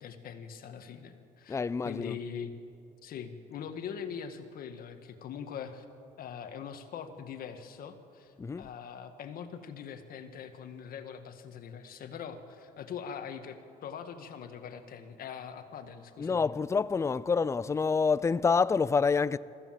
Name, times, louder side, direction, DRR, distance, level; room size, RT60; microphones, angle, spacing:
voice 1, 0.0-1.6 1.8-2.5 3.0-5.9 6.2-16.5, left 7 dB, 60° left, 1.8 m, -42 dB
voice 2, 1.5-2.2 8.4-8.7 16.2-19.4, left 5 dB, 15° left, 0.4 m, -27 dB
23.5 x 15.0 x 7.7 m
cardioid pair, 110°, 17 cm